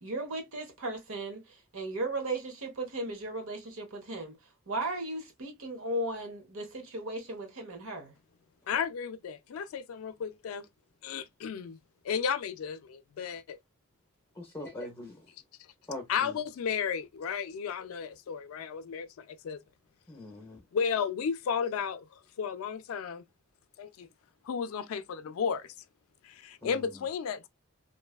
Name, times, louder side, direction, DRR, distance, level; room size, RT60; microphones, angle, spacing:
voice 1, 0.0-4.4 4.7-8.1, right 2 dB, 80° right, 0.9 m, -36 dB
voice 2, 8.7-10.7 11.0-11.8 12.0-13.6 16.1-19.6 20.7-22.1 22.4-23.2 23.8-24.1 24.4-25.7 26.2-27.5, left 7 dB, 85° left, 0.3 m, -33 dB
voice 3, 14.4-15.3 15.9-16.4 20.1-20.6 26.6-27.0, left 1 dB, 10° left, 0.6 m, -42 dB
2.6 x 2.3 x 2.3 m
head